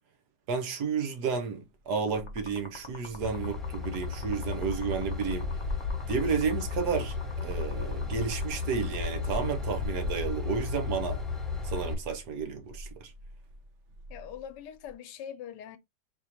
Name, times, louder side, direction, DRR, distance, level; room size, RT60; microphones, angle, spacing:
voice 1, 0.5-5.6 6.1-11.2 11.6-13.1, right 6 dB, 70° right, 1.5 m, -32 dB
sound 1, 1.5-14.9, equal, 55° right, 0.9 m, -47 dB
sound 2, 2.0-9.5, left 4 dB, 45° left, 0.3 m, -49 dB
Train / Engine, 3.2-11.9, left 4 dB, ahead, 0.8 m, -34 dB
voice 2, 14.1-15.8, left 9 dB, 85° left, 1.3 m, -42 dB
4.3 x 3.7 x 2.8 m
omnidirectional pair, 1.9 m